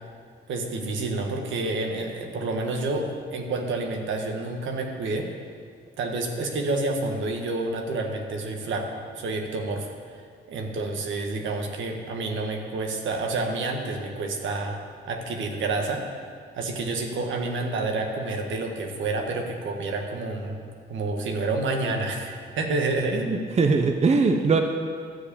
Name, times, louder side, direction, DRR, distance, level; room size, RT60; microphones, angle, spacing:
voice 1, 0.5-5.3 6.0-10.2 10.5-14.8 15.1-16.1 16.5-20.6 20.9-23.3, right 2 dB, 75° right, 3 dB, 1.5 m, -29 dB
voice 2, 23.1-24.6, right 4 dB, 35° right, 5 dB, 0.7 m, -21 dB
13.0 x 4.9 x 8.7 m, 2.1 s
cardioid pair, 90°, 20 cm